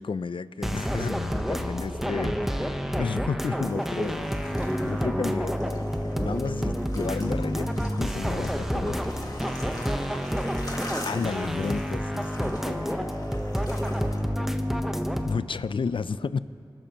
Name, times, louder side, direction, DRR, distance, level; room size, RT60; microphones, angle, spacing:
voice 1, 0.0-2.3 2.7-4.5 4.8-9.0 11.1-13.2 15.2-16.4, left 5 dB, 70° left, 16 dB, 0.4 m, -32 dB
sound 1, 0.6-15.4, equal, 5° right, 0.9 m, -29 dB
voice 2, 1.9-2.2 9.7-11.2 12.9-15.1, right 1 dB, 80° right, -9 dB, 2.3 m, -47 dB
sound 2, 3.7-14.2, left 1 dB, 45° left, 1.8 m, -43 dB
25.0 x 12.5 x 2.9 m, 2.6 s
wide cardioid pair, 40°, 9 cm